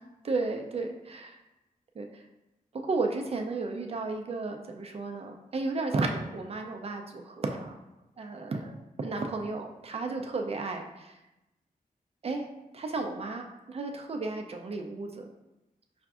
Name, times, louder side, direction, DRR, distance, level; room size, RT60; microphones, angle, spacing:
voice 1, 0.2-1.4 2.0-2.2 2.7-7.7 8.2-11.2 12.2-12.5 12.7-15.2, right 3 dB, 45° right, 3 dB, 0.4 m, -33 dB
5.6 x 2.5 x 2.3 m, 0.97 s
wide cardioid pair, 145°, 15 cm